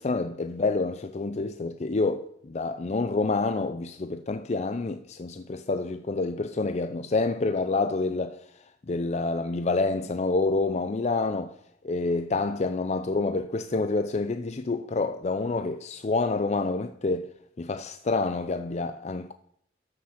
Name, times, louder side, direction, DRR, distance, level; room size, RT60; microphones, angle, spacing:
voice 1, 0.0-8.5 8.9-11.6 11.8-17.3 17.6-19.3, left 3 dB, 40° left, 0.5 m, -28 dB
13.5 x 6.2 x 5.8 m
head